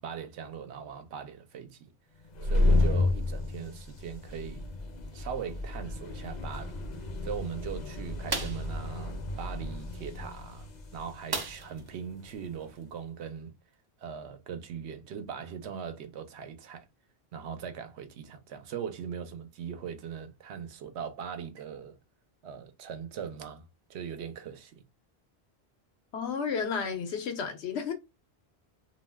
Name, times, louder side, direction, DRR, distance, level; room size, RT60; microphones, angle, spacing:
voice 1, 0.0-1.9 2.4-4.6 5.1-6.8 7.2-13.5 14.0-16.8 17.3-22.0 22.4-24.8, right 7 dB, 85° right, 0.9 m, -40 dB
sound 1, 2.2-12.7, left 2 dB, 50° left, 0.6 m, -32 dB
sound 2, 8.3-8.7 11.3-11.9 12.3-12.4 12.8-12.9, right 3 dB, 40° right, 0.3 m, -34 dB
voice 2, 26.1-27.9, left 6 dB, 90° left, 1.0 m, -32 dB
2.5 x 2.1 x 3.3 m
omnidirectional pair, 1.1 m